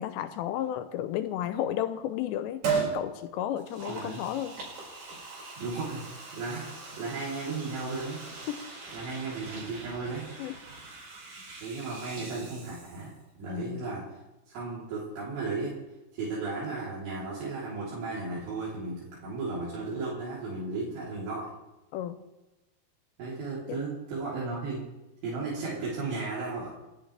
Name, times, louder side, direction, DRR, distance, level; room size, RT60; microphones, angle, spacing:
voice 1, 0.0-2.6 2.9-4.6 8.5-8.6 10.4-10.5 13.5-13.8 21.9-22.2 23.7-23.8, left 11 dB, 85° left, 10 dB, 2.9 m, -33 dB
Liquid, 2.6-3.0 3.6-13.2 13.5-13.6, right 5 dB, 60° right, 7.2 m, -38 dB
voice 2, 3.9-4.2 5.6-6.0 6.3-8.2 8.9-10.3 11.6-13.1 13.4-14.1 14.5-15.7 16.1-21.5 23.2-24.8 25.2-26.7, right 3 dB, 75° right, -8 dB, 5.6 m, -35 dB
29.5 x 11.0 x 3.3 m, 1.0 s
omnidirectional pair, 5.0 m